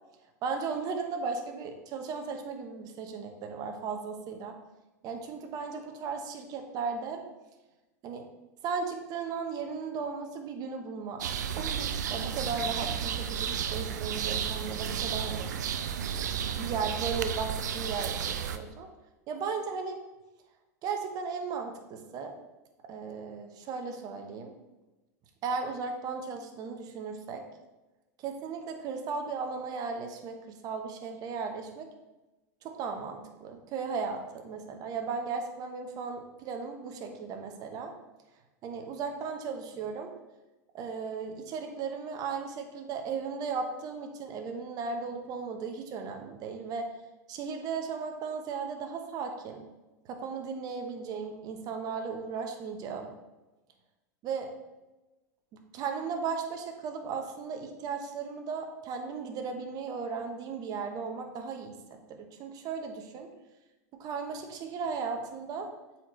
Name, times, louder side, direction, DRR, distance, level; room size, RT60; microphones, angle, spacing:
voice 1, 0.4-4.6 5.0-7.2 8.0-8.3 8.6-15.5 16.1-18.9 19.3-20.0 20.8-22.3 22.9-24.5 25.4-27.4 28.2-31.9 32.6-37.9 38.6-40.1 40.7-46.9 47.3-49.6 50.0-53.1 54.2-54.5 55.5-63.3 64.0-65.7, right 5 dB, 40° right, 5 dB, 1.0 m, -36 dB
sound 1, 11.2-18.6, right 8 dB, 75° right, 0.4 m, -32 dB
7.4 x 4.4 x 3.1 m, 1.1 s
hypercardioid pair, 95°, 10 cm